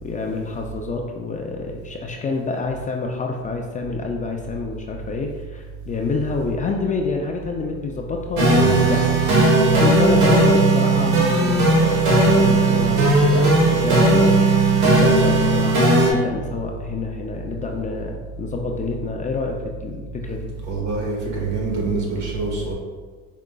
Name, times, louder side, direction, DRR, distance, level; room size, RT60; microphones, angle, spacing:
voice 1, 0.0-9.1 9.8-14.4 14.8-15.8 16.1-20.5, left 4 dB, 25° left, 1 dB, 0.3 m, -27 dB
voice 2, 8.4-8.8 20.7-22.7, right 4 dB, 60° right, -2 dB, 1.5 m, -25 dB
sound 1, 8.4-16.1, right 2 dB, 90° right, 1.2 m, -16 dB
4.9 x 3.6 x 2.2 m, 1.4 s
cardioid pair, 110°, 32 cm